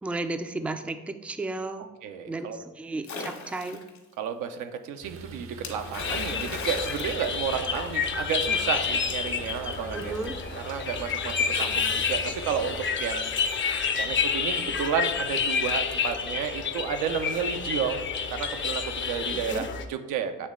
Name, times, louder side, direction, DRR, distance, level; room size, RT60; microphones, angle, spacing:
voice 1, 0.0-1.9 2.3-3.8 9.9-10.4 19.3-19.6, right 2 dB, 5° right, 8 dB, 0.3 m, -33 dB
voice 2, 1.8-2.6 4.2-10.1 10.6-13.7 13.9-20.5, right 7 dB, 90° right, 7 dB, 0.6 m, -32 dB
Splash splatter, 3.0-4.0 5.6-8.1, left 4 dB, 65° left, 1.3 m, -39 dB
sound 1, 5.0-12.9, right 5 dB, 45° right, 0.6 m, -43 dB
sound 2, 6.0-19.8, left 6 dB, 40° left, 0.6 m, -29 dB
8.2 x 3.1 x 3.7 m, 1.1 s
cardioid pair, 90°, 30 cm